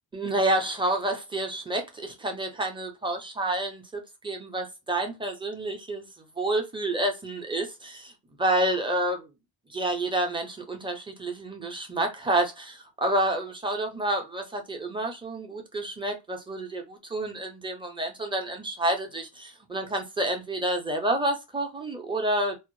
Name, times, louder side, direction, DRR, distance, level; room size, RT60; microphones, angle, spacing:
voice 1, 0.1-6.1 6.4-8.1 8.4-9.3 9.7-22.6, right 1 dB, 10° right, 0.6 m, -29 dB
2.0 x 2.0 x 3.0 m
cardioid pair, 95°, 47 cm